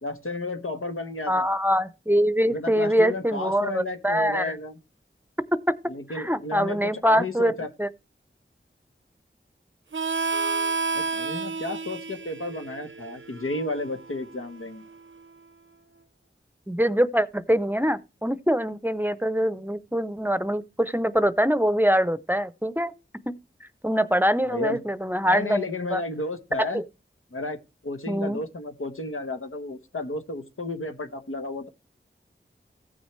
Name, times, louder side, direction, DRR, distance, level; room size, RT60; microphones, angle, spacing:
voice 1, 0.0-1.5 2.4-4.8 5.9-7.7 10.9-14.9 24.4-24.8 25.2-26.8 27.3-27.6 27.8-31.7, left 2 dB, 90° left, 1.1 m, -32 dB
voice 2, 1.3-4.6 6.1-7.5 7.8-7.9 16.7-22.9 23.3-23.4 23.8-25.6 25.9-26.0 26.6-26.8 28.1-28.4, equal, 10° right, 0.6 m, -24 dB
Harmonica, 9.9-15.2, right 4 dB, 70° right, 0.6 m, -31 dB
15.0 x 6.3 x 3.2 m
wide cardioid pair, 45°, 21 cm